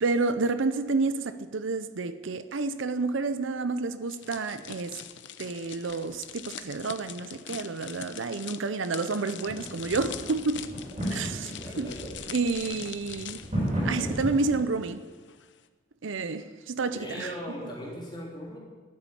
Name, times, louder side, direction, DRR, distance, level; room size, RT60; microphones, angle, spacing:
voice 1, 0.0-5.0 5.4-10.7 11.1-11.9 12.3-13.4 13.8-15.0 16.0-17.3, right 3 dB, 75° right, 0.6 m, -30 dB
sound 1, 4.1-14.9 15.2-15.5, left 9 dB, 65° left, 0.7 m, -43 dB
sound 2, 9.4-14.6, equal, 35° right, 5.2 m, -34 dB
voice 2, 11.5-12.1 16.9-18.6, equal, 25° left, 3.6 m, -39 dB
12.5 x 7.1 x 9.6 m
head